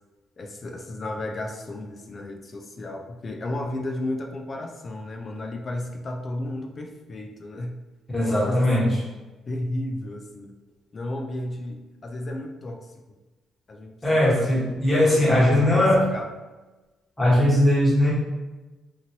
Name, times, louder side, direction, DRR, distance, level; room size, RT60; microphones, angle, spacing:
voice 1, 0.4-7.8 8.2-9.0 9.5-10.5 10.9-12.9 13.7-14.5 15.3-16.3, left 1 dB, 40° left, 3 dB, 0.4 m, -33 dB
voice 2, 8.1-9.0 14.0-16.1 17.2-18.1, left 1 dB, 15° left, -7 dB, 1.3 m, -19 dB
3.0 x 2.6 x 2.8 m, 1.2 s
cardioid pair, 90°, 0 cm